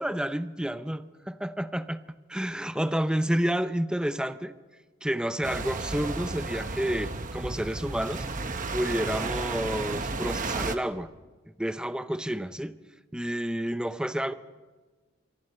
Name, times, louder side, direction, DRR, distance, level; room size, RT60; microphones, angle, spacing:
voice 1, 0.0-2.0 2.3-4.5 5.0-8.3 8.7-11.1 11.6-12.8 13.1-14.3, right 1 dB, 5° right, 0.6 m, -30 dB
sound 1, 5.4-10.8, right 3 dB, 40° right, 1.1 m, -33 dB
26.0 x 24.0 x 4.3 m
head